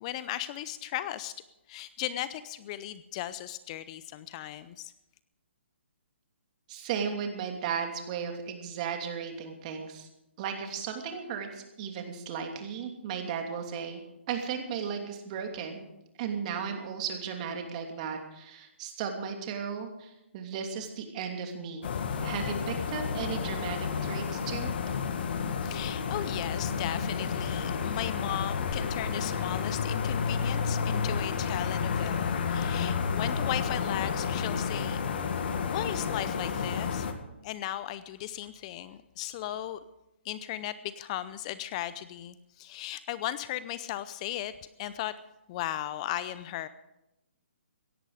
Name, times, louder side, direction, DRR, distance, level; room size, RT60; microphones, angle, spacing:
voice 1, 0.0-1.3 1.7-4.9 25.6-37.1 37.4-39.8 40.2-44.5 44.8-45.1 45.5-46.7, left 13 dB, 30° left, 15 dB, 0.6 m, -36 dB
voice 2, 6.7-10.1 10.4-14.0 14.3-15.8 16.2-21.9 22.2-24.7, right 7 dB, 35° right, 4 dB, 2.9 m, -35 dB
sound 1, 21.8-37.1, left 6 dB, 55° left, 1.8 m, -31 dB
17.0 x 14.0 x 5.0 m, 0.90 s
hypercardioid pair, 140°, 7 cm